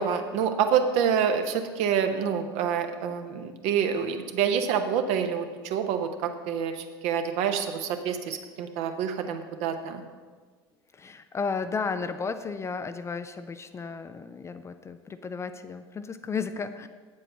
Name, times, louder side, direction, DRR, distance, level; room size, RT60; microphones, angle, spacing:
voice 1, 0.0-10.0, right 7 dB, 50° right, 7 dB, 0.9 m, -27 dB
voice 2, 10.9-16.9, left 5 dB, 20° left, 10 dB, 0.4 m, -33 dB
8.7 x 7.6 x 5.4 m, 1.4 s
figure-of-eight pair, 70°, 14 cm